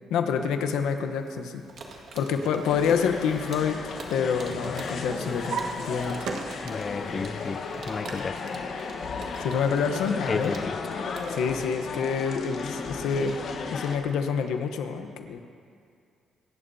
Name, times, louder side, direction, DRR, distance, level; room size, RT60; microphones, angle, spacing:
voice 1, 0.1-1.6 2.1-3.8 4.1-6.3 9.4-10.5 11.3-13.4 13.7-15.4, left 6 dB, 85° left, 6 dB, 0.9 m, -27 dB
sound 1, 1.6-12.5, right 3 dB, 60° right, 1.8 m, -46 dB
Drawer open or close, 1.9-4.4 4.7-7.0 7.4-8.1, right 5 dB, 80° right, 1.4 m, -38 dB
sound 2, 2.6-14.0, left 5 dB, 60° left, 1.2 m, -35 dB
voice 2, 6.6-7.6 7.9-8.4 10.3-10.8, left 4 dB, 35° left, 14 dB, 0.4 m, -32 dB
25.0 x 11.0 x 2.8 m, 2.4 s
cardioid pair, 90°, 0 cm